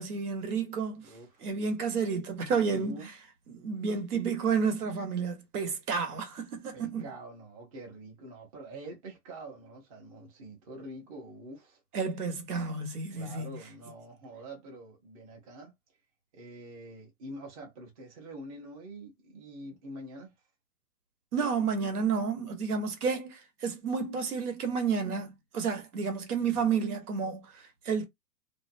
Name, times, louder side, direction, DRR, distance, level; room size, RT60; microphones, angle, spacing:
voice 1, 0.0-1.1 1.4-3.1 3.5-7.1 11.9-13.5 21.3-28.0, right 5 dB, 70° right, 1.1 m, -31 dB
voice 2, 1.0-1.5 2.6-3.1 6.7-11.8 13.1-15.7 16.3-20.3 26.4-26.7, right 1 dB, 25° right, 0.7 m, -46 dB
2.5 x 2.1 x 2.5 m
hypercardioid pair, 155°, 47 cm